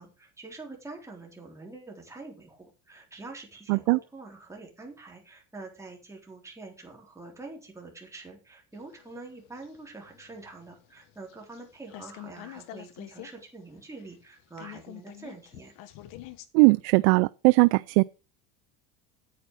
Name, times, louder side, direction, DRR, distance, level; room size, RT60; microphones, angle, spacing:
voice 1, 0.0-15.7, right 3 dB, 10° right, 3.7 m, -45 dB
voice 2, 3.7-4.0 16.5-18.0, right 28 dB, 85° right, 0.5 m, -20 dB
sound 1, 8.7-11.6 11.9-13.3 13.6-13.7 14.0-16.5, left 14 dB, 65° left, 1.3 m, -46 dB
9.4 x 8.7 x 4.8 m
cardioid pair, 145°, 35 cm